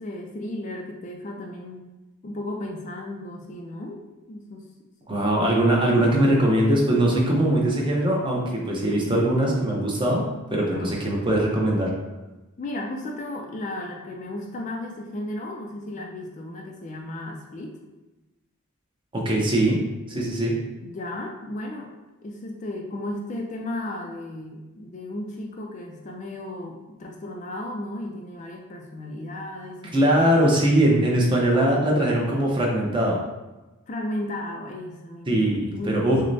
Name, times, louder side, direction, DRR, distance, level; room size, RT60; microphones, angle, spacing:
voice 1, 0.0-1.9 2.2-4.0 4.3-4.7 5.0-5.2 10.5-11.0 12.6-17.8 20.8-21.9 22.2-30.2 33.9-36.2, left 1 dB, 35° left, 1 dB, 0.3 m, -34 dB
voice 2, 5.1-10.2 10.5-11.9 19.1-19.8 20.1-20.6 29.9-33.2 35.3-36.2, right 1 dB, 20° right, -2 dB, 0.6 m, -21 dB
6.2 x 2.1 x 2.6 m, 1.1 s
head